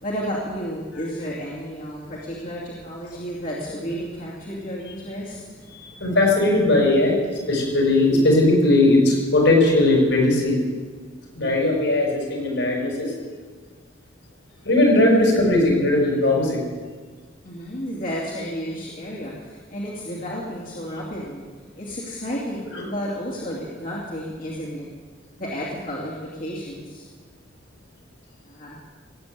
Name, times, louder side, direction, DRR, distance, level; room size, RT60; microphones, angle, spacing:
voice 1, 0.0-5.4 17.4-21.5 21.8-24.9 25.4-27.1 28.5-28.8, equal, 45° left, -6 dB, 2.6 m, -32 dB
voice 2, 5.7-7.1 7.5-10.6 11.4-13.1 14.6-16.6 22.7-22.8, left 2 dB, 70° left, -1 dB, 5.8 m, -18 dB
17.5 x 8.8 x 8.2 m, 1.5 s
head